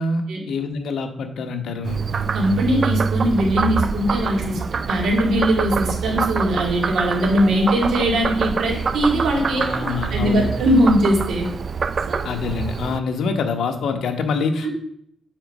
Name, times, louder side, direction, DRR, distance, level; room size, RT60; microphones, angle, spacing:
voice 1, 0.0-2.0 9.6-10.5 12.2-14.7, left 4 dB, 75° left, 6 dB, 1.1 m, -25 dB
Frog, 1.8-13.0, right 5 dB, 40° right, 0.3 m, -25 dB
voice 2, 2.3-11.5 12.1-12.3 14.6-14.7, equal, 80° right, 0 dB, 2.2 m, -20 dB
7.8 x 4.5 x 5.2 m, 0.70 s
wide cardioid pair, 145°, 0 cm